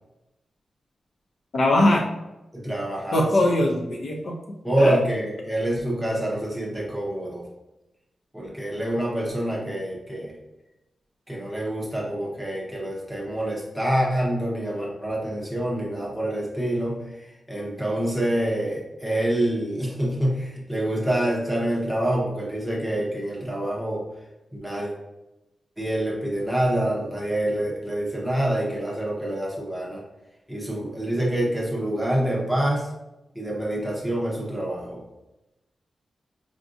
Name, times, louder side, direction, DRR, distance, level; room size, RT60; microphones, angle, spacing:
voice 1, 1.5-2.1 3.1-4.4 4.8-5.0, left 1 dB, 50° left, 1 dB, 0.4 m, -20 dB
voice 2, 2.5-3.5 4.6-7.5 8.3-10.4 11.3-24.0 24.6-24.9 25.8-30.0 30.5-32.9 33.3-35.0, right 1 dB, ahead, -4 dB, 0.7 m, -26 dB
4.8 x 2.5 x 2.4 m, 0.97 s
wide cardioid pair, 180°, 0 cm